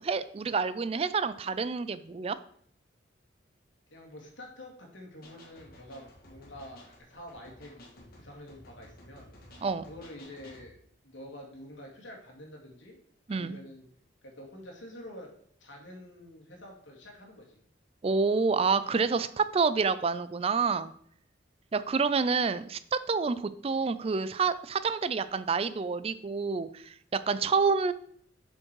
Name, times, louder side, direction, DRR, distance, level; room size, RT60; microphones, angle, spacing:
voice 1, 0.0-2.4 9.6-9.8 13.3-13.6 18.0-20.9 21.7-27.9, right 5 dB, 30° right, 14 dB, 0.3 m, -28 dB
voice 2, 3.9-9.3 9.9-13.0 13.3-13.9 14.2-15.3 15.6-17.6, left 1 dB, 75° left, 0 dB, 2.2 m, -47 dB
sound 1, 5.2-10.7, left 1 dB, 50° left, 1.7 m, -54 dB
7.3 x 5.3 x 4.6 m, 0.64 s
head